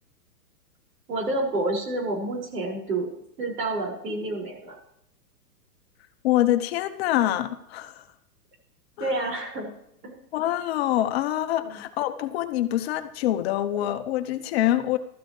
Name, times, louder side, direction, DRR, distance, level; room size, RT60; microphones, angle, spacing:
voice 1, 1.1-3.1 3.4-4.7 9.0-9.7 10.0-10.2 11.6-11.8, right 2 dB, 75° right, 0 dB, 5.9 m, -29 dB
voice 2, 6.2-8.0 9.0-9.1 10.3-15.0, left 13 dB, 40° left, 10 dB, 0.9 m, -25 dB
15.0 x 13.0 x 3.3 m, 0.76 s
hypercardioid pair, 145°, 48 cm